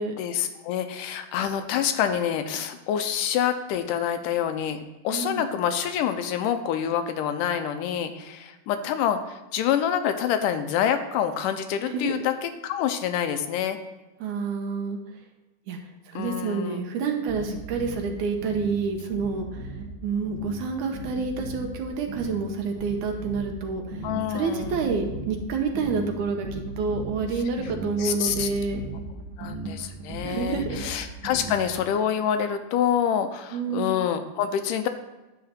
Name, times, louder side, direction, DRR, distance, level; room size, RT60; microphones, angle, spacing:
voice 1, 0.2-13.8 16.2-16.8 24.0-24.8 28.0-28.5 29.4-34.9, left 9 dB, 80° left, 8 dB, 2.2 m, -27 dB
voice 2, 5.1-5.5 11.8-12.2 14.2-15.0 15.7-15.8 16.1-19.7 20.0-28.8 30.2-30.9 33.5-34.0, right 4 dB, 70° right, 3 dB, 2.2 m, -28 dB
sound 1, 17.3-31.9, right 2 dB, 35° right, 1.6 m, -37 dB
10.5 x 3.7 x 7.2 m, 1.1 s
omnidirectional pair, 3.8 m